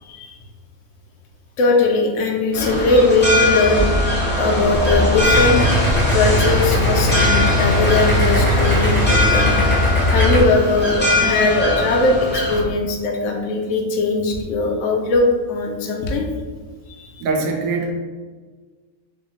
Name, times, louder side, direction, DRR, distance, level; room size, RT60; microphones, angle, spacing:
voice 1, 0.0-0.3 1.6-3.9 4.4-5.7 6.1-9.6 10.1-16.2 16.9-17.2, left 2 dB, 65° left, 2 dB, 0.9 m, -19 dB
sound 1, 2.5-12.6, left 1 dB, 10° left, 0.7 m, -21 dB
Idling, 5.3-10.4, left 1 dB, 25° right, 1.7 m, -19 dB
voice 2, 17.2-17.9, right 3 dB, 75° right, 1 dB, 1.0 m, -22 dB
3.3 x 2.7 x 3.0 m, 1.4 s
omnidirectional pair, 1.5 m